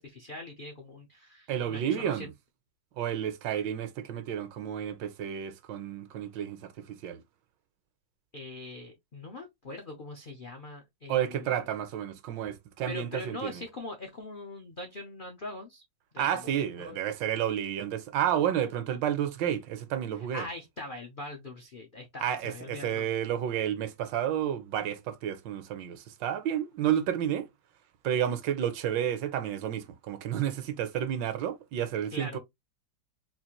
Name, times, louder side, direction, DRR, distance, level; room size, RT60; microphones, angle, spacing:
voice 1, 0.0-2.3 8.3-11.6 12.9-15.8 16.1-17.0 20.2-23.1 32.1-32.4, left 2 dB, 85° left, 0.4 m, -42 dB
voice 2, 1.5-2.3 3.0-7.2 11.1-13.6 16.2-20.5 22.2-27.5 28.0-32.4, right 10 dB, 80° right, 1.4 m, -31 dB
4.1 x 2.5 x 2.9 m
omnidirectional pair, 2.0 m